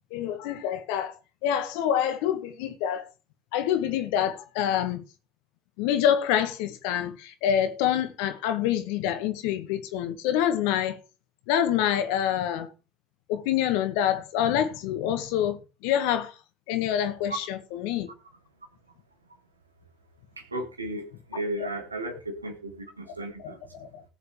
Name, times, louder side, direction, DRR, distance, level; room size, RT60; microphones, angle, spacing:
voice 1, 0.1-3.1 3.5-5.0 5.8-11.0 11.5-12.7 13.3-16.4 16.7-18.1 22.1-22.2 23.4-24.0, left 10 dB, 65° left, 1.6 m, -26 dB
voice 2, 20.4-23.6, right 1 dB, 90° right, 2.0 m, -34 dB
18.5 x 6.7 x 3.3 m
figure-of-eight pair, 60°, 0 cm